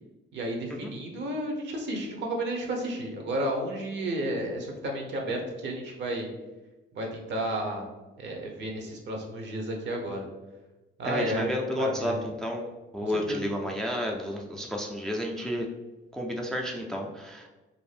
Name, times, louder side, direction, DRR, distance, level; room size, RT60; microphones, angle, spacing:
voice 1, 0.3-6.3 6.9-7.8 8.2-10.2 11.0-11.5 11.8-12.1 13.3-13.4, right 1 dB, 65° right, 2 dB, 0.7 m, -32 dB
voice 2, 11.0-12.7 12.9-15.7 16.1-17.5, equal, 5° left, 1 dB, 0.3 m, -31 dB
2.6 x 2.0 x 3.2 m, 1.1 s
cardioid pair, 90°, 20 cm